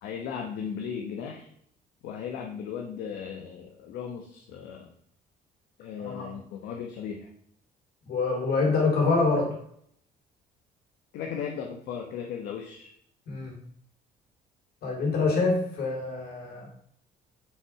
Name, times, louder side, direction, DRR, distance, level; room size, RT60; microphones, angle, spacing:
voice 1, 0.0-1.5 2.0-4.9 5.8-7.3 11.1-12.9, left 7 dB, 80° left, 2 dB, 1.0 m, -36 dB
voice 2, 8.1-9.6 13.3-13.6 14.8-16.7, left 3 dB, 65° left, 0 dB, 3.2 m, -26 dB
6.6 x 6.2 x 4.7 m, 0.67 s
cardioid pair, 110°, 17 cm